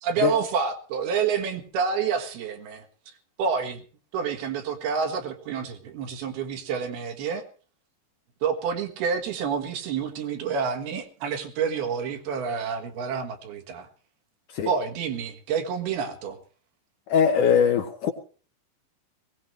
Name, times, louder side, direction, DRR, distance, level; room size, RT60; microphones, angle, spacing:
voice 1, 0.0-3.1 3.4-3.8 4.1-7.4 8.4-13.9 14.7-16.4, right 6 dB, 70° right, 5 dB, 3.4 m, -28 dB
voice 2, 17.1-18.1, left 7 dB, 65° left, 4 dB, 2.2 m, -21 dB
20.0 x 17.5 x 3.2 m, 0.39 s
omnidirectional pair, 4.7 m